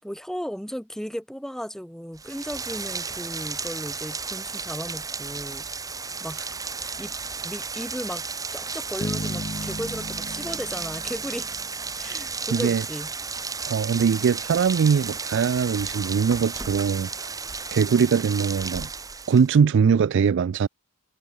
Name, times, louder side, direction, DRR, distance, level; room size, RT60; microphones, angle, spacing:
voice 1, 0.0-5.7 6.2-6.4 7.0-7.1 7.4-8.2 8.5-11.5 11.9-13.1, equal, ahead, 4.3 m, -35 dB
Rain, 2.2-19.6, right 4 dB, 15° right, 1.8 m, -33 dB
Bass guitar, 9.0-12.1, left 1 dB, 35° left, 2.5 m, -35 dB
voice 2, 12.5-12.8 13.7-17.1 17.7-18.9 19.3-20.7, right 6 dB, 55° right, 0.3 m, -21 dB
head